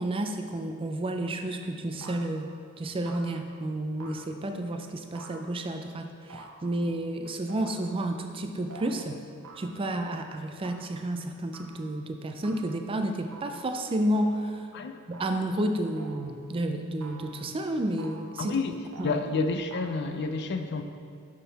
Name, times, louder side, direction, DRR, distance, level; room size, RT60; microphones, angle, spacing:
voice 1, 0.0-9.2 9.6-14.7 15.1-18.5 19.0-19.2, right 1 dB, 25° right, 5 dB, 0.4 m, -31 dB
sound 1, 1.2-1.5 2.0-2.6 3.1-3.5 4.0-4.6 5.1-5.8 6.3-7.0 7.5-8.0 8.7-8.9 9.4-10.0 10.6-10.9 11.5-11.9 12.4-12.8 13.3-13.7 14.1-14.6 15.1-15.5 16.0-16.4 17.0-17.5 18.0-18.4 18.9-19.2 19.7-20.0, right 3 dB, 90° right, 0.8 m, -48 dB
voice 2, 18.4-18.8 19.0-20.8, left 3 dB, 55° left, 8 dB, 0.4 m, -29 dB
10.0 x 3.7 x 4.1 m, 2.2 s
head